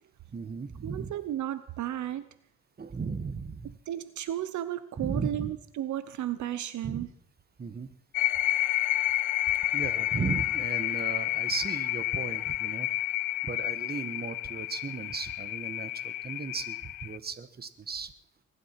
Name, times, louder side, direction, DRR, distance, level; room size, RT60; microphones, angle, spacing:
voice 1, 0.3-1.1 2.8-3.7 5.0-5.5 6.8-7.1 7.6-7.9 9.7-12.9 13.4-18.1, right 5 dB, 30° right, 13 dB, 1.4 m, -36 dB
voice 2, 0.8-2.2 3.9-7.1, right 12 dB, 70° right, 14 dB, 0.9 m, -33 dB
sound 1, 8.1-17.2, left 17 dB, 85° left, 0.6 m, -30 dB
21.5 x 11.5 x 5.9 m, 0.69 s
cardioid pair, 90°, 30 cm